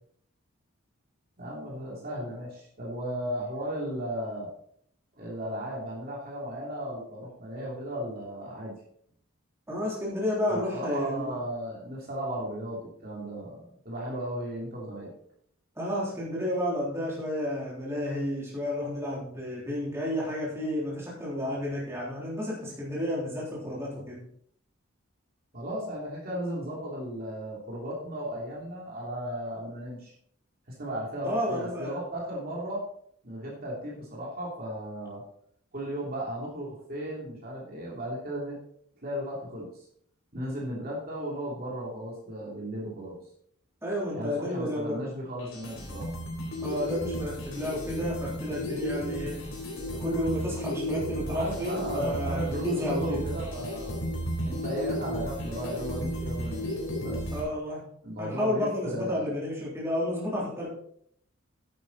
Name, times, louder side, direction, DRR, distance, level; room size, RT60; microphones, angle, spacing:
voice 1, 1.4-4.5 5.1-8.7 10.5-13.6 13.8-15.1 25.5-30.1 30.7-32.9 33.2-35.2 35.7-38.6 39.0-39.7 40.3-43.2 44.1-46.1 51.3-53.9 54.4-57.2 58.0-59.4, right 1 dB, 45° right, -4 dB, 3.1 m, -35 dB
voice 2, 9.7-11.4 15.8-24.2 31.2-32.0 43.8-45.0 46.6-49.4 49.9-53.3 57.3-57.8 58.2-60.7, left 1 dB, 10° right, -6 dB, 3.5 m, -31 dB
sound 1, 45.4-57.4, equal, 65° left, 3.8 m, -33 dB
10.5 x 8.6 x 4.1 m, 0.66 s
head